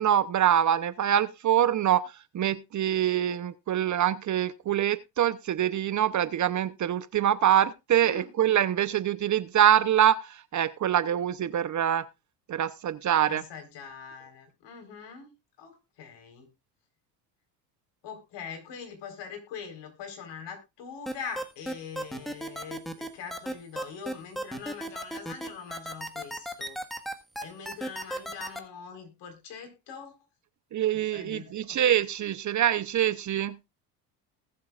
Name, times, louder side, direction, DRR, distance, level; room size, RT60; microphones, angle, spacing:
voice 1, 0.0-12.0 12.5-13.4 30.7-33.6, right 10 dB, 40° right, 0.8 m, -25 dB
voice 2, 8.0-8.3 13.3-15.3 15.6-16.5 18.0-26.8 27.4-30.2 30.9-31.8, left 6 dB, 60° left, 4.5 m, -43 dB
sound 1, 21.1-28.6, right 1 dB, ahead, 1.6 m, -34 dB
20.0 x 7.4 x 2.4 m
hypercardioid pair, 80°, 48 cm